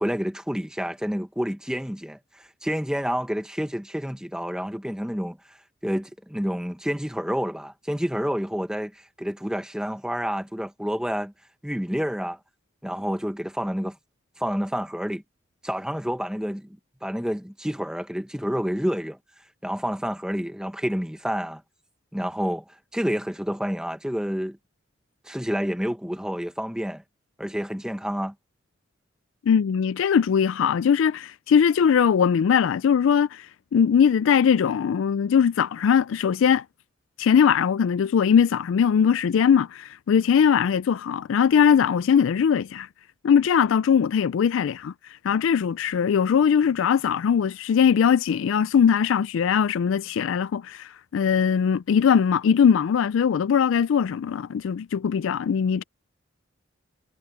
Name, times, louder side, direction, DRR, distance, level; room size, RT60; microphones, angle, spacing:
voice 1, 0.0-5.6 5.8-11.3 11.6-12.4 12.8-14.0 14.4-15.2 15.6-16.7 17.0-19.2 19.6-21.6 22.1-24.6 25.2-27.0 27.4-28.3, equal, 5° right, 1.1 m, -29 dB
voice 2, 29.5-36.6 37.2-42.9 43.2-44.9 45.2-55.8, left 7 dB, 75° left, 0.3 m, -20 dB
head